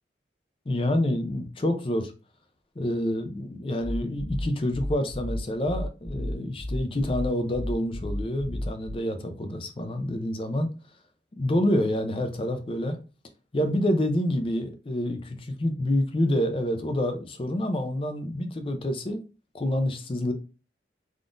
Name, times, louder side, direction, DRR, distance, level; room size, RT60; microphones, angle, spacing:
voice 1, 0.7-2.1 2.8-10.7 11.4-13.0 13.5-19.2 19.5-20.3, left 1 dB, 30° left, 0.4 m, -27 dB
sound 1, 3.8-8.9, left 1 dB, 20° right, 0.9 m, -33 dB
3.5 x 2.4 x 2.5 m
head